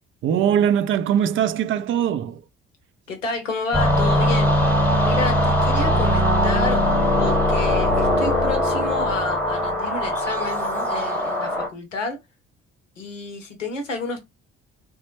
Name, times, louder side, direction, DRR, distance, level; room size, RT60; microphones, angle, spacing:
voice 1, 0.2-2.4, right 9 dB, 35° right, 0.4 m, -21 dB
voice 2, 3.1-4.5 5.0-6.8 7.2-12.2 13.0-14.2, left 3 dB, 85° left, 0.7 m, -30 dB
sound 1, 3.7-11.7, equal, 5° left, 1.0 m, -20 dB
3.2 x 2.1 x 3.0 m
figure-of-eight pair, 50°, 37 cm